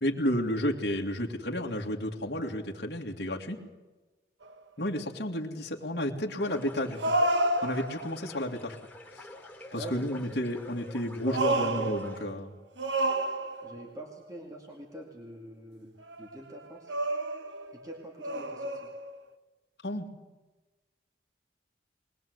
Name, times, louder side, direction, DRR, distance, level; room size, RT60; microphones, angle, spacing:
voice 1, 0.0-3.6 4.8-7.1 7.6-8.8 9.1-9.3 9.7-12.5 19.8-20.1, left 1 dB, 60° left, 0 dB, 2.3 m, -32 dB
sound 1, 4.5-4.6 7.0-8.2 10.8-12.3 12.8-13.9 16.1-16.4 16.9-17.7 18.2-19.2, right 2 dB, 80° right, 1.3 m, -30 dB
sound 2, 6.4-12.2, left 1 dB, 10° left, 3.0 m, -48 dB
voice 2, 9.7-10.4 11.2-11.9 13.6-16.9 17.7-18.9, equal, 20° right, 0 dB, 2.4 m, -44 dB
22.0 x 20.0 x 8.1 m, 1.2 s
head